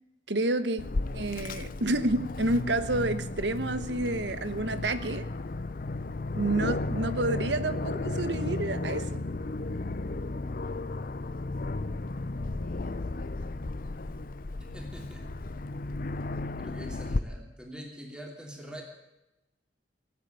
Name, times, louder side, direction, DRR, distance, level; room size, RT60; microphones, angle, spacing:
voice 1, 0.3-0.8 1.1-5.3 6.3-9.2, right 2 dB, 75° right, 12 dB, 1.2 m, -29 dB
Aircraft, 0.8-17.2, left 2 dB, 50° left, 0.7 m, -34 dB
voice 2, 14.6-15.3 16.6-18.8, equal, 5° right, 0 dB, 3.0 m, -43 dB
18.5 x 8.3 x 9.0 m, 0.96 s
head